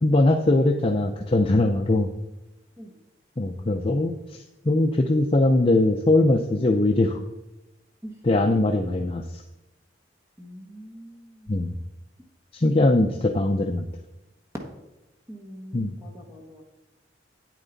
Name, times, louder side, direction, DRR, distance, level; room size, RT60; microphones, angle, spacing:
voice 1, 0.0-2.1 3.4-7.2 8.2-9.4 11.5-11.7 12.5-13.9 15.7-15.9, left 2 dB, 30° left, 4 dB, 0.5 m, -21 dB
voice 2, 10.4-11.6 15.3-16.6, equal, 15° right, 1 dB, 1.2 m, -44 dB
9.2 x 9.2 x 4.0 m, 1.0 s
head